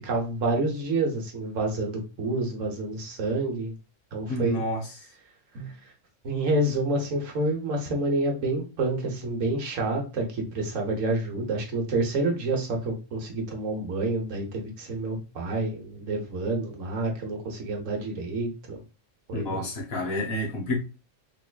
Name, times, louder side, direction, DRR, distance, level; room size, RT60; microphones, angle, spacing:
voice 1, 0.0-3.7 4.1-4.6 5.5-5.7 6.2-18.8 19.3-19.7, right 2 dB, 80° right, 1.3 m, -28 dB
voice 2, 4.3-4.9 19.3-20.8, left 1 dB, 55° left, 1.3 m, -29 dB
3.6 x 3.3 x 2.3 m
omnidirectional pair, 1.3 m